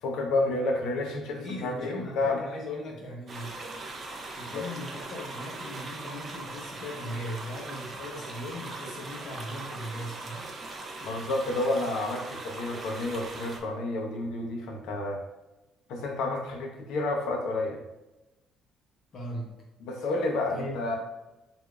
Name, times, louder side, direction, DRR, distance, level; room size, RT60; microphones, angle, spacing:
voice 1, 0.0-2.5 4.5-4.6 11.0-15.2 15.9-17.8 19.8-21.0, left 2 dB, 75° left, 2 dB, 0.7 m, -30 dB
voice 2, 1.3-3.5 4.3-10.5 19.1-19.5 20.5-20.9, left 1 dB, 40° left, -2 dB, 0.8 m, -38 dB
sound 1, 3.3-13.6, right 2 dB, 25° right, 0.4 m, -40 dB
4.7 x 2.6 x 2.3 m, 1.0 s
cardioid pair, 175°, 0 cm